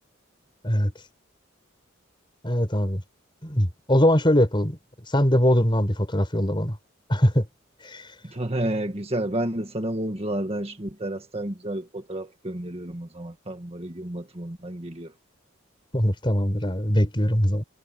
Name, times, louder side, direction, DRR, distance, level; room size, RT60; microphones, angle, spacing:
voice 1, 2.4-3.0 3.4-4.8 5.1-6.8 7.1-7.5 7.8-8.0 15.9-17.6, equal, 25° left, 4.5 m, -21 dB
voice 2, 8.2-15.1, right 1 dB, 30° right, 1.6 m, -31 dB
head